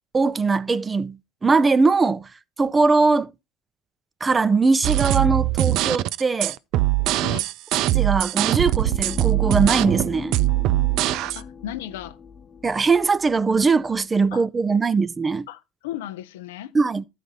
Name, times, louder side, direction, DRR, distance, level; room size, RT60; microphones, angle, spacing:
voice 1, 0.1-2.3 2.6-3.3 4.2-6.6 7.9-10.3 12.6-15.5 16.7-17.0, right 4 dB, 25° right, 0.6 m, -21 dB
sound 1, 4.8-11.4, right 16 dB, 65° right, 0.4 m, -21 dB
sound 2, 8.4-14.3, left 6 dB, 35° left, 1.0 m, -38 dB
voice 2, 11.3-12.2 14.3-14.4 15.5-16.7, left 12 dB, 80° left, 0.6 m, -35 dB
13.0 x 5.1 x 4.0 m
hypercardioid pair, 70°, 0 cm